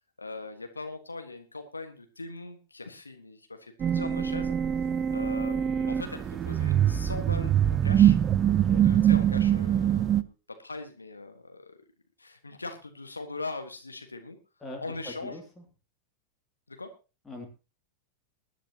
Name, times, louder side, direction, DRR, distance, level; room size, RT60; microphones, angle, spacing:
voice 1, 0.2-4.6 5.1-8.2 8.8-10.3 10.6-11.8 12.2-14.4 14.8-15.4 16.7-16.9, left 3 dB, 80° left, 6 dB, 1.5 m, -40 dB
sound 1, 3.8-10.2, right 10 dB, 25° right, 0.7 m, -24 dB
voice 2, 8.4-8.9 14.6-15.6 17.3-17.5, left 2 dB, 10° left, 1 dB, 2.7 m, -42 dB
20.0 x 11.0 x 2.9 m, 0.30 s
figure-of-eight pair, 90°, 0 cm